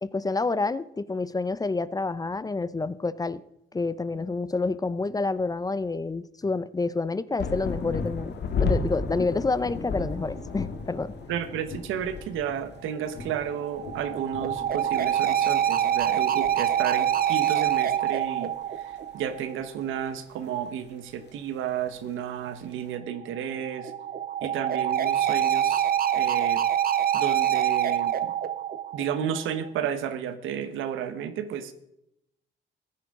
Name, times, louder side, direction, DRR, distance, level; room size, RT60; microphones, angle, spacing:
voice 1, 0.0-3.4 3.7-8.3 8.6-11.1 24.4-24.5, left 3 dB, 20° left, 17 dB, 0.5 m, -28 dB
sound 1, 7.4-15.2 15.5-15.6 15.9-16.8 17.7-17.8, left 4 dB, 60° left, 1.6 m, -33 dB
voice 2, 11.3-23.9 24.4-26.7 27.1-28.3 28.9-31.7, right 9 dB, 85° right, 11 dB, 1.1 m, -32 dB
sound 2, 13.2-19.7 23.2-29.7, right 10 dB, 50° right, 0.9 m, -26 dB
15.0 x 10.0 x 3.7 m, 0.81 s
cardioid pair, 90°, 20 cm